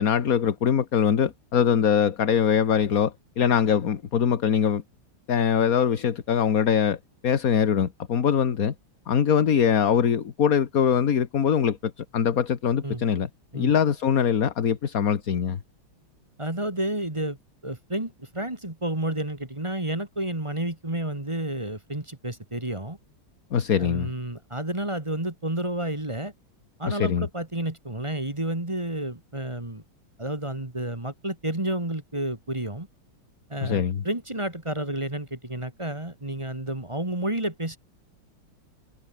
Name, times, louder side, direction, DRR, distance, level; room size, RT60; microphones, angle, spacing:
voice 1, 0.0-4.8 5.3-8.7 9.1-15.6 23.5-24.1 26.8-27.3 33.6-34.0, left 8 dB, 45° left, 1.6 m, -23 dB
voice 2, 16.4-17.4 17.6-23.0 23.8-26.3 26.8-29.8 30.2-32.9 33.5-37.8, right 1 dB, 15° right, 2.2 m, -30 dB
omnidirectional pair, 2.3 m